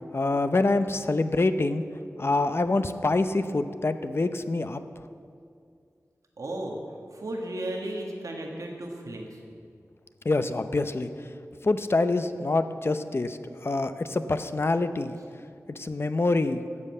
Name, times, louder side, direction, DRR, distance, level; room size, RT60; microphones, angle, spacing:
voice 1, 0.1-1.8 2.2-4.8 10.2-11.1 11.6-15.2 15.8-16.6, left 2 dB, 45° left, 10 dB, 0.6 m, -26 dB
voice 2, 6.4-6.8 7.1-9.4, right 1 dB, 90° right, 0 dB, 1.5 m, -34 dB
12.0 x 7.7 x 8.3 m, 2.3 s
wide cardioid pair, 80°, 6 cm